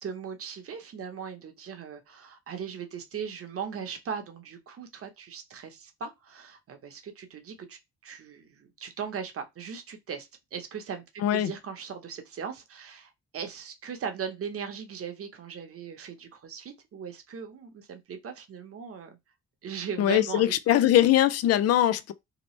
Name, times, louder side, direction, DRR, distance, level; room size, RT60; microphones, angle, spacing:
voice 1, 0.0-11.0 11.3-19.2 19.6-20.8, right 7 dB, 50° right, 0.9 m, -39 dB
voice 2, 20.0-22.1, left 12 dB, 55° left, 0.4 m, -22 dB
2.9 x 2.1 x 3.1 m
cardioid pair, 90°, 30 cm